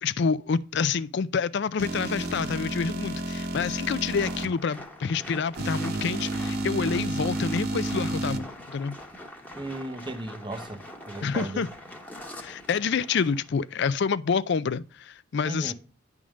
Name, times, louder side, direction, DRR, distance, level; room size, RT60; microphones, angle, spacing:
voice 1, 0.0-8.9 11.2-11.7 12.4-15.7, left 5 dB, 55° left, 0.4 m, -28 dB
sound 1, 1.8-4.5 5.5-8.4, right 1 dB, 45° right, 1.0 m, -31 dB
sound 2, 4.1-13.7, left 1 dB, 5° left, 1.1 m, -44 dB
voice 2, 9.5-10.8 11.1-11.6 15.5-15.7, right 2 dB, 20° right, 0.8 m, -35 dB
10.0 x 3.6 x 6.2 m
head